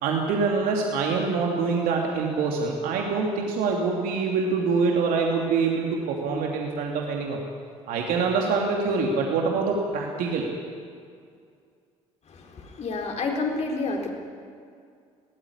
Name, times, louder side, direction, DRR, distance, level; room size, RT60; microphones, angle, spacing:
voice 1, 0.0-7.4 7.9-10.5, right 4 dB, 55° right, 0 dB, 2.8 m, -25 dB
voice 2, 12.3-14.1, left 3 dB, 40° left, 1 dB, 4.4 m, -29 dB
21.0 x 18.5 x 9.8 m, 2.3 s
figure-of-eight pair, 55°, 17 cm